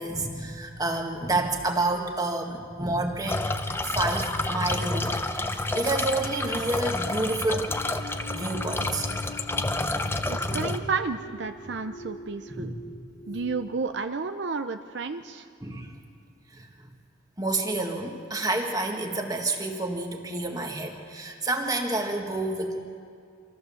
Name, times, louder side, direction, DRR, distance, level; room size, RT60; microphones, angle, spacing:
voice 1, 0.0-3.4 3.8-5.2 5.5-7.7 8.3-9.1 10.5-10.8 12.6-12.9 13.3-13.4 15.6-16.0 16.5-16.9 17.4-22.8, right 2 dB, 20° right, 3 dB, 1.7 m, -29 dB
sound 1, 3.3-10.8, left 2 dB, 10° left, 0.7 m, -29 dB
sound 2, 6.8-13.9, left 1 dB, 55° left, 1.9 m, -44 dB
voice 2, 10.2-12.7 13.3-15.5, right 4 dB, 65° right, 8 dB, 0.6 m, -31 dB
25.5 x 14.5 x 7.1 m, 2.3 s
head